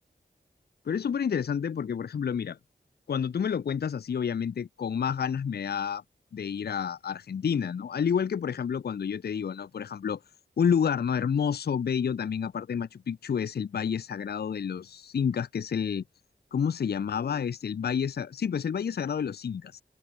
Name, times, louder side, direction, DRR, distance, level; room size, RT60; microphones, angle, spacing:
voice 1, 0.9-2.6 3.1-6.0 6.3-10.2 10.6-16.0 16.5-19.8, left 7 dB, 60° left, 0.4 m, -29 dB
open air
wide cardioid pair, 55°, 19 cm